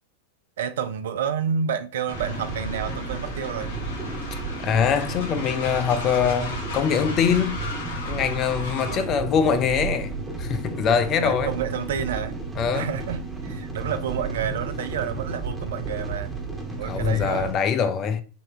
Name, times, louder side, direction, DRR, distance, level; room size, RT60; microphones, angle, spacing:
voice 1, 0.6-3.7 8.9-9.2 11.2-12.4 12.7-16.3 16.8-17.6, right 7 dB, 60° right, 0.5 m, -29 dB
Train, 2.1-9.1, left 3 dB, 65° left, 1.1 m, -36 dB
sound 1, 2.1-17.5, right 3 dB, 10° right, 1.0 m, -32 dB
voice 2, 4.6-7.6 8.1-10.1 10.4-11.5 12.6-13.0 16.8-18.2, left 7 dB, 30° left, 0.5 m, -23 dB
5.4 x 2.8 x 3.2 m
figure-of-eight pair, 90°, 0 cm